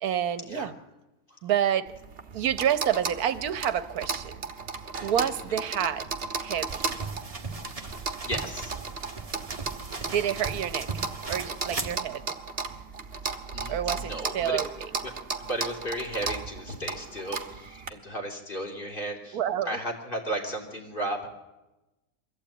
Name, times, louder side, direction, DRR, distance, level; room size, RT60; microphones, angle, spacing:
voice 1, 0.0-0.7 1.4-1.9 2.3-4.4 5.0-7.0 10.0-12.4 13.7-14.9 19.3-19.8, right 9 dB, 75° right, 14 dB, 1.4 m, -29 dB
sound 1, 1.9-17.9, right 4 dB, 40° right, 1.5 m, -35 dB
sound 2, 6.7-12.0, right 3 dB, 25° right, 1.5 m, -37 dB
voice 2, 7.8-8.8 13.2-14.6 15.0-15.1 15.4-19.4 19.7-21.3, right 1 dB, 35° left, 2 dB, 3.5 m, -35 dB
23.0 x 15.0 x 8.9 m, 1.0 s
omnidirectional pair, 1.6 m